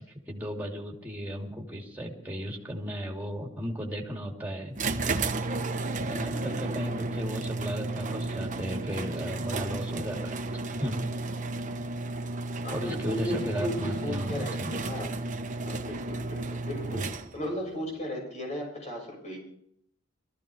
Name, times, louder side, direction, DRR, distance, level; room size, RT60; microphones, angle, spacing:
voice 1, 0.0-4.8 6.0-11.1 12.7-14.7, equal, 10° right, 0 dB, 2.9 m, -35 dB
sound 1, 4.8-17.6, right 2 dB, 40° right, 1.1 m, -33 dB
voice 2, 12.6-15.2 15.7-17.0 17.3-19.4, equal, 35° left, 0 dB, 6.7 m, -36 dB
22.0 x 14.5 x 3.5 m, 0.72 s
head